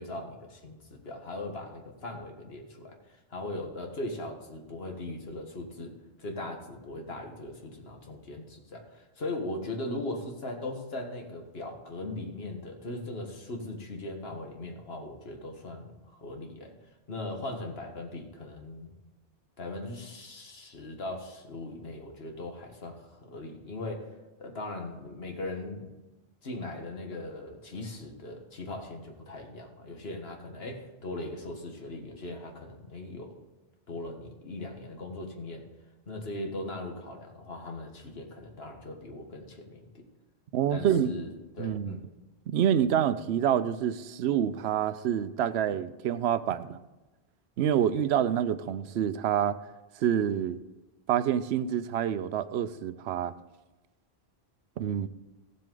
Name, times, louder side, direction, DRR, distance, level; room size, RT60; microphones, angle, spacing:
voice 1, 0.0-5.9 6.2-16.7 17.1-18.9 19.6-25.9 26.4-33.3 33.9-35.6 36.1-40.0 40.7-41.3 41.6-42.0, left 2 dB, 70° left, 1.7 m, -39 dB
voice 2, 40.5-41.1 41.6-42.0 42.5-46.8 47.6-49.6 50.0-50.6 51.1-53.3 54.8-55.1, right 9 dB, 85° right, 0.8 m, -27 dB
16.0 x 7.7 x 3.8 m
omnidirectional pair, 1.1 m